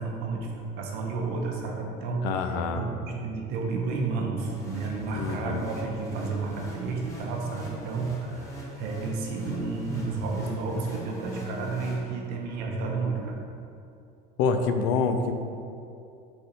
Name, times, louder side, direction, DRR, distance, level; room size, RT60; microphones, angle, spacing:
voice 1, 0.0-13.4, right 4 dB, 60° right, 0 dB, 0.9 m, -31 dB
voice 2, 2.2-2.8 5.1-5.6 14.4-15.3, left 5 dB, 70° left, 7 dB, 0.5 m, -26 dB
sound 1, 4.4-12.5, equal, 15° left, 1.0 m, -41 dB
4.3 x 4.3 x 5.0 m, 2.6 s
cardioid pair, 170°, 18 cm